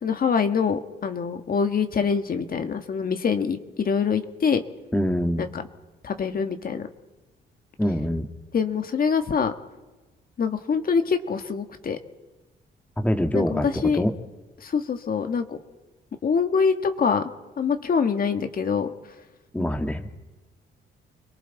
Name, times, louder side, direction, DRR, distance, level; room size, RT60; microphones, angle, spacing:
voice 1, 0.0-4.6 5.4-5.6 6.0-6.9 8.5-9.5 10.4-12.0 13.3-14.0 14.6-15.6 16.2-17.3 17.6-18.9, left 6 dB, 45° left, 7 dB, 1.7 m, -24 dB
voice 2, 4.9-5.5 7.8-8.3 13.0-13.7 13.9-14.1 19.5-20.1, equal, 5° left, 6 dB, 1.8 m, -24 dB
30.0 x 22.5 x 4.1 m, 1.2 s
cardioid pair, 90°, 20 cm